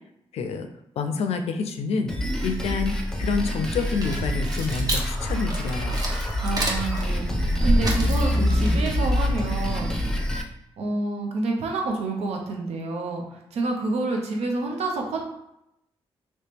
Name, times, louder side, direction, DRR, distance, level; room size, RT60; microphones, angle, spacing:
voice 1, 0.3-0.7 1.0-2.1 2.4-6.0, left 5 dB, 80° left, 7 dB, 0.4 m, -28 dB
Drum kit, 2.1-10.4, equal, 5° left, 0.6 m, -28 dB
sound 1, 3.8-10.3, equal, 35° right, 0.8 m, -26 dB
voice 2, 6.4-10.0 10.8-15.3, right 2 dB, 85° right, 1 dB, 0.7 m, -28 dB
3.0 x 2.9 x 3.4 m, 0.83 s
cardioid pair, 75°, 11 cm